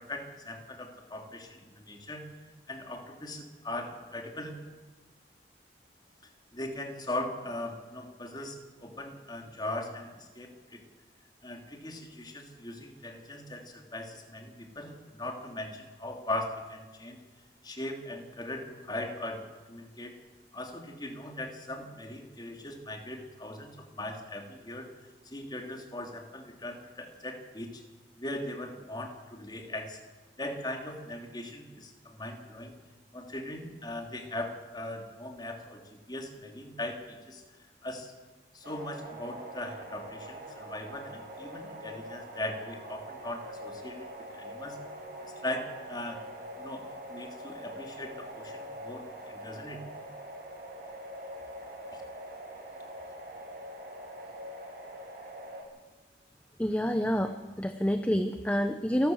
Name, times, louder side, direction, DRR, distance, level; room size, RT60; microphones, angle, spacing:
voice 1, 0.0-2.2 2.7-4.5 6.5-10.8 11.4-17.2 17.6-19.4 19.7-20.1 20.5-24.9 25.2-27.8 28.2-30.0 30.4-32.8 33.1-37.4 37.8-38.1 38.5-44.1 44.3-44.8 45.4-46.2 46.6-49.8 51.9-52.0, left 1 dB, 25° left, 2 dB, 3.0 m, -39 dB
sound 1, 38.6-55.6, equal, 55° right, 6.4 m, -44 dB
voice 2, 56.6-59.1, equal, 10° left, 8 dB, 0.8 m, -28 dB
28.0 x 13.0 x 7.9 m, 1.3 s
head